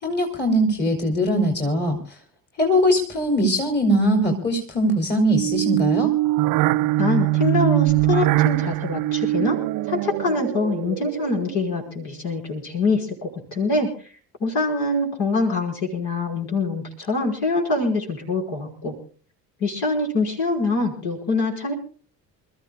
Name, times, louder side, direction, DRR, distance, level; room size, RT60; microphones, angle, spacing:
voice 1, 0.0-2.0 2.6-6.1, equal, 20° left, 3 dB, 3.3 m, -21 dB
sound 1, 5.3-11.7, right 17 dB, 45° right, 0.7 m, -22 dB
voice 2, 7.0-9.6 9.9-13.9 14.4-19.0 19.6-21.7, left 3 dB, 55° left, 0 dB, 5.6 m, -24 dB
28.5 x 14.5 x 2.3 m, 0.39 s
figure-of-eight pair, 55°, 48 cm